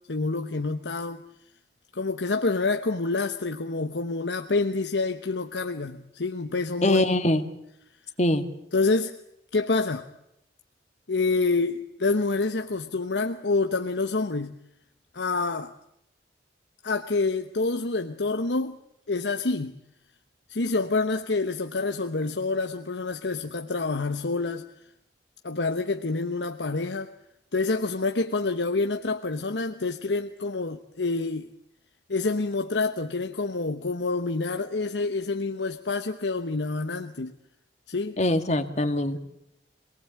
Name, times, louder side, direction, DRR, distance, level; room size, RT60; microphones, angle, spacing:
voice 1, 0.1-1.2 1.9-7.0 8.7-9.1 9.5-10.1 11.1-14.5 15.1-15.7 16.8-18.8 19.1-19.8 20.5-24.6 25.4-27.1 27.5-31.5 32.1-37.3 37.9-38.2, left 3 dB, 75° left, 6 dB, 1.1 m, -27 dB
voice 2, 6.8-7.4 8.2-8.5 38.2-39.2, left 1 dB, 40° left, 9 dB, 2.0 m, -23 dB
26.5 x 19.5 x 8.7 m, 0.80 s
head